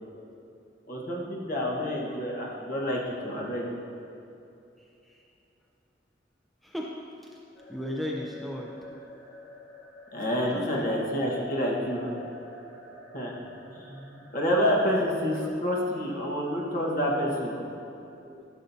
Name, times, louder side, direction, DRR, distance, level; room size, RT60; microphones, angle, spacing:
voice 1, 0.9-3.7 10.1-12.1 13.1-13.3 13.7-17.7, equal, 50° left, -3 dB, 1.3 m, -28 dB
voice 2, 4.8-5.3 6.6-6.9 7.2-7.4 7.7-8.7 10.5-10.9 15.4-15.5 18.2-18.3, equal, ahead, -2 dB, 0.5 m, -36 dB
sound 1, 7.5-15.5, left 2 dB, 65° left, 1.2 m, -47 dB
13.0 x 6.5 x 2.7 m, 2.7 s
head